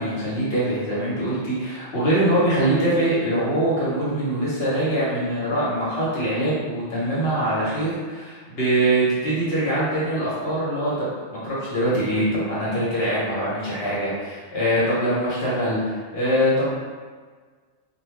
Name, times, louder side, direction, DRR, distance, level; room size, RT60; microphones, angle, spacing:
voice 1, 0.0-11.1 11.3-16.7, right 1 dB, 60° left, -8 dB, 1.3 m, -23 dB
2.7 x 2.2 x 3.3 m, 1.5 s
omnidirectional pair, 1.2 m